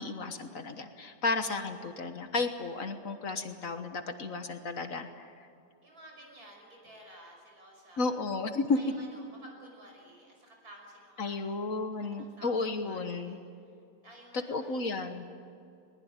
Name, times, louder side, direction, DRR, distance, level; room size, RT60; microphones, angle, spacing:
voice 1, 0.0-5.3 8.0-8.8 11.2-13.4 14.3-15.2, left 3 dB, 55° left, 8 dB, 1.6 m, -33 dB
voice 2, 5.8-8.2 8.7-13.4 14.0-14.9, right 1 dB, 65° right, 0 dB, 6.4 m, -53 dB
21.0 x 20.5 x 8.9 m, 2.4 s
omnidirectional pair, 1.7 m